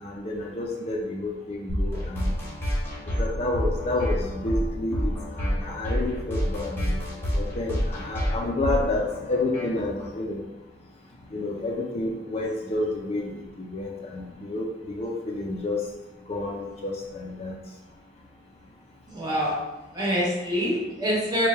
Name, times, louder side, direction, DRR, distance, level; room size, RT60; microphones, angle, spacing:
voice 1, 0.0-2.3 3.2-7.0 7.3-10.4 11.3-15.8 16.3-17.5, left 2 dB, 35° left, -1 dB, 0.4 m, -30 dB
sound 1, 1.7-10.1, equal, 15° left, 1.0 m, -28 dB
voice 2, 19.1-19.5 19.9-21.5, equal, 25° right, -6 dB, 1.1 m, -25 dB
3.2 x 2.2 x 4.3 m, 1.1 s
head